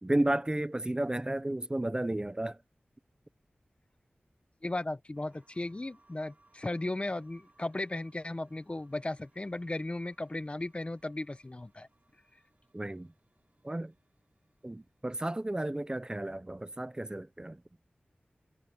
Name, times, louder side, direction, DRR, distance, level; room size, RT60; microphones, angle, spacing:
voice 1, 0.0-2.6 12.7-13.1 13.6-13.9 14.6-17.6, right 1 dB, 25° right, 0.8 m, -32 dB
voice 2, 4.6-11.9, left 2 dB, 30° left, 1.2 m, -36 dB
sound 1, 5.1-15.4 15.7-15.8, right 2 dB, 45° right, 7.5 m, -69 dB
wide cardioid pair, 65°, 4 cm